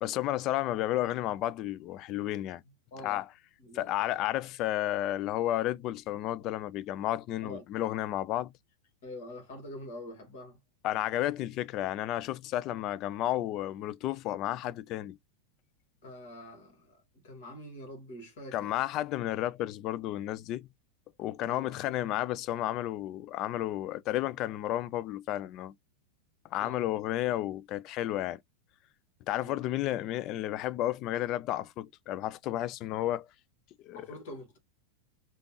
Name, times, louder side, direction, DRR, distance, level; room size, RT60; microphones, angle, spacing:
voice 1, 0.0-2.6 3.0-3.3 3.7-8.5 10.8-15.2 18.5-20.7 21.2-25.7 26.5-28.4 29.3-33.3 33.8-34.1, left 14 dB, 35° left, 0.3 m, -32 dB
voice 2, 2.9-3.2 3.6-4.2 7.4-7.6 9.0-10.6 16.0-18.7 21.4-21.9 26.6-26.8 29.3-29.7 33.9-34.6, left 1 dB, 55° left, 1.8 m, -46 dB
3.4 x 2.8 x 2.9 m
figure-of-eight pair, 90°, 0 cm